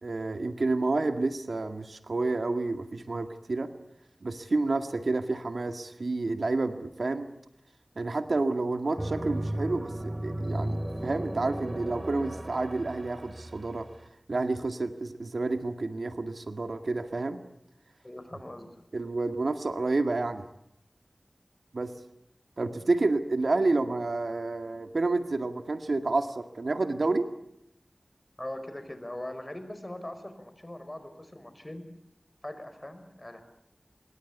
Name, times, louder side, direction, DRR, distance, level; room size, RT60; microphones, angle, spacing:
voice 1, 0.0-3.7 4.2-7.3 8.0-13.9 14.3-17.4 18.9-20.5 21.7-21.9 22.6-27.3, right 3 dB, 85° right, 7 dB, 2.0 m, -29 dB
sound 1, 9.0-14.0, right 1 dB, 35° right, 2.4 m, -35 dB
voice 2, 18.0-18.8 28.4-31.8 32.4-33.4, left 1 dB, 30° left, 10 dB, 5.1 m, -41 dB
26.0 x 22.5 x 8.2 m, 0.78 s
wide cardioid pair, 50°, 0 cm